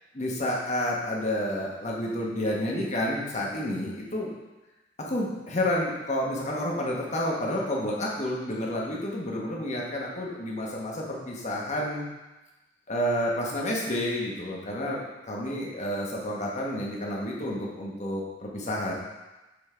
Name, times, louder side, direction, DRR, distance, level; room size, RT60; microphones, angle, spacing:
voice 1, 0.1-4.3 5.0-12.0 12.9-15.0 15.3-18.9, left 1 dB, 40° left, -3 dB, 1.1 m, -30 dB
7.0 x 4.4 x 3.3 m, 1.1 s
head